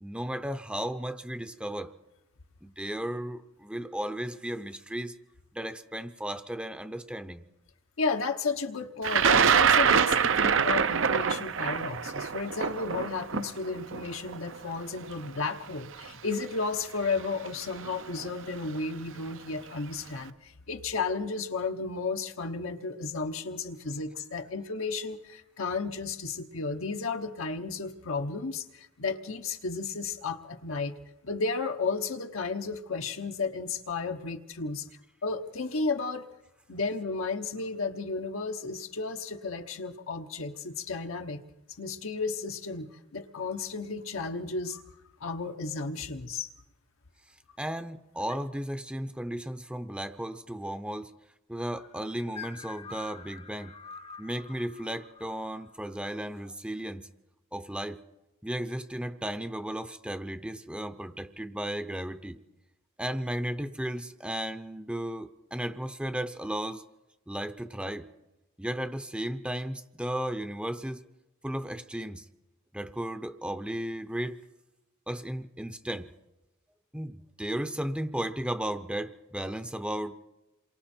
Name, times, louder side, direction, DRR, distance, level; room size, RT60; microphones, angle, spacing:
voice 1, 0.0-1.9 2.6-5.1 5.5-7.4 47.6-51.1 51.5-53.7 54.2-57.1 57.5-58.0 58.4-62.4 63.0-66.8 67.3-68.1 68.6-71.0 71.4-72.2 72.7-74.4 75.1-76.1 76.9-80.2, right 1 dB, 5° right, 9 dB, 0.6 m, -35 dB
voice 2, 8.0-30.9 31.2-34.9 35.2-36.3 36.7-41.4 41.8-44.8 45.2-46.5, left 4 dB, 80° left, 5 dB, 1.1 m, -33 dB
Thunder, 9.0-15.1 16.0-16.1 17.2-17.5 17.8-18.3, right 7 dB, 65° right, 0.6 m, -25 dB
sound 1, 51.6-56.6, left 5 dB, 30° left, 0.8 m, -47 dB
27.5 x 23.5 x 4.4 m, 0.97 s
head